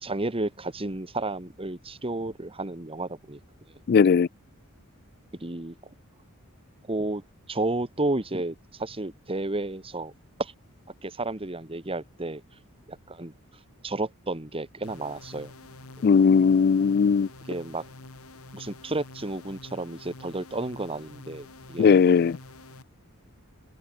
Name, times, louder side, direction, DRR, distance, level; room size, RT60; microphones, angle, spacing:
voice 1, 0.0-3.4 5.4-5.8 6.9-7.2 7.5-10.1 10.4-10.5 11.0-12.4 12.9-13.3 13.8-15.5 17.5-17.9 18.5-22.0, right 2 dB, 25° right, 1.6 m, -32 dB
voice 2, 3.9-4.3 16.0-17.3 21.8-22.4, left 6 dB, 45° left, 0.3 m, -18 dB
sound 1, 14.8-22.8, left 2 dB, 85° left, 2.9 m, -47 dB
head